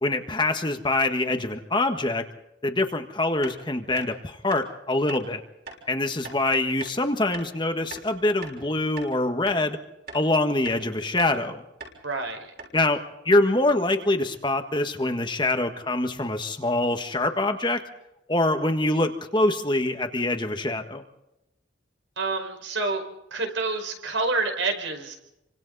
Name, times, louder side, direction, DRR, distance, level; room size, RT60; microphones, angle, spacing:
voice 1, 0.0-2.3 2.6-5.4 5.9-9.8 10.1-11.6 12.7-17.8 18.3-21.0, left 2 dB, 25° left, 6 dB, 1.5 m, -24 dB
sound 1, 3.4-3.6 4.0-4.1 4.5-4.6 5.1-5.2 5.7-5.8 6.2-6.4 6.8-7.0 7.3-7.5 7.9-8.6 9.0-9.1 9.5-9.6 10.1-10.3 10.6-10.8 11.2-11.4 11.8-12.0 12.2-12.3 12.6-12.8, right 4 dB, 50° right, 6.5 m, -40 dB
voice 2, 12.0-12.5 22.2-23.0 23.3-25.2, right 3 dB, 75° right, 4 dB, 5.2 m, -28 dB
29.5 x 25.5 x 4.1 m, 0.87 s
head